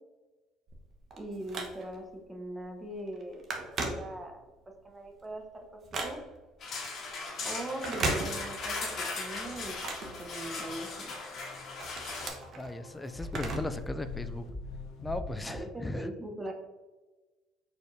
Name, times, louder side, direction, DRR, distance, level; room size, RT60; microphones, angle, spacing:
Telephone, 0.7-2.1 2.6-2.8 3.1-4.6 5.0-6.5 7.7-8.8 9.1-10.9 11.3-13.8 14.1-14.2 15.1-15.2, right 3 dB, 50° right, 1.0 m, -37 dB
voice 1, 1.2-4.4 4.8-6.2 7.4-9.7 10.2-11.1 15.5-16.5, right 1 dB, 20° right, 2 dB, 0.9 m, -41 dB
sound 1, 6.6-12.3, left 3 dB, 50° left, 1.4 m, -38 dB
sound 2, 7.4-15.6, left 3 dB, 65° left, 0.8 m, -45 dB
voice 2, 12.6-14.5 15.0-16.1, left 2 dB, 15° left, 10 dB, 0.3 m, -37 dB
4.8 x 4.1 x 2.6 m, 1.2 s
supercardioid pair, 85°, 0 cm